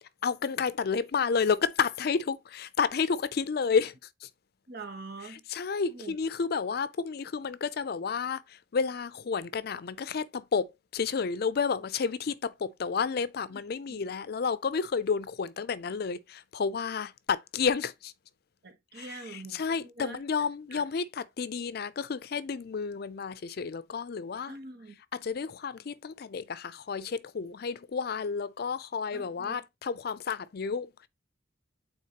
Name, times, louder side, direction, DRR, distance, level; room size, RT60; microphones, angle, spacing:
voice 1, 0.2-4.0 4.2-4.3 5.2-18.1 18.9-24.5 25.1-31.1, left 5 dB, 55° left, 0.4 m, -31 dB
voice 2, 4.7-5.4 5.9-6.2 13.9-14.0 18.6-20.2 20.7-21.1 24.5-24.9 29.1-29.6, right 3 dB, 60° right, 1.2 m, -44 dB
8.5 x 3.9 x 2.9 m
head